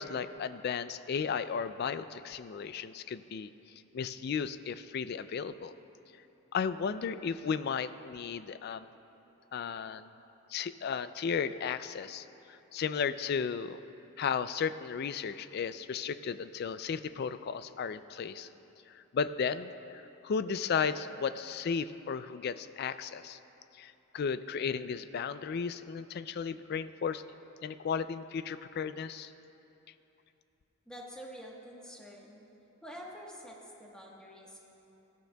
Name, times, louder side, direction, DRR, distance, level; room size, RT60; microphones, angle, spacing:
voice 1, 0.0-3.5 3.9-5.7 6.5-8.9 9.5-10.1 10.5-13.8 14.2-18.5 18.9-23.4 23.7-27.2 27.6-29.3, left 6 dB, 50° left, 13 dB, 0.3 m, -34 dB
voice 2, 30.9-32.4 32.8-34.6, equal, 5° left, -3 dB, 1.2 m, -47 dB
18.0 x 13.0 x 2.3 m, 3.0 s
head